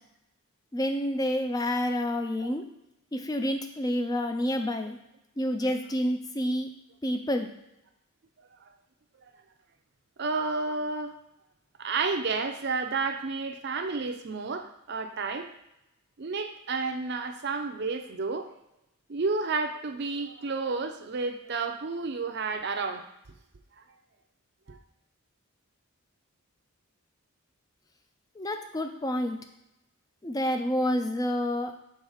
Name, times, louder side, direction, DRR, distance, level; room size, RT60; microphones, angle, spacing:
voice 1, 0.7-2.6 3.1-5.0 5.4-6.7 7.0-7.5 28.4-29.4 30.2-31.7, equal, 15° left, 6 dB, 0.4 m, -28 dB
voice 2, 10.2-11.1 11.8-15.5 16.2-18.5 19.1-23.0 23.8-23.9 24.7-24.8, right 4 dB, 50° right, 6 dB, 0.5 m, -31 dB
5.5 x 4.0 x 4.9 m, 0.86 s
head